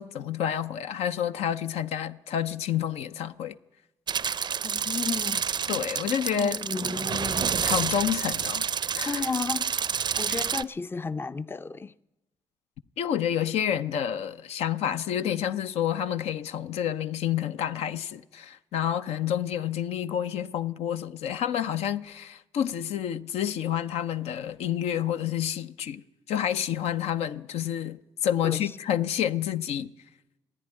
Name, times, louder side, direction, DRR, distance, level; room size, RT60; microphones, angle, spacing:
voice 1, 0.0-3.6 5.7-6.6 7.6-8.7 8.9-9.2 13.0-26.0 26.3-29.9, left 10 dB, 80° left, 0.5 m, -29 dB
sound 1, 4.1-10.6, right 7 dB, 45° right, 0.4 m, -29 dB
voice 2, 4.6-5.5 6.4-7.7 9.1-9.8 10.2-11.9 28.4-28.7, left 4 dB, 20° left, 0.4 m, -33 dB
14.0 x 10.0 x 9.5 m
supercardioid pair, 55°, 11 cm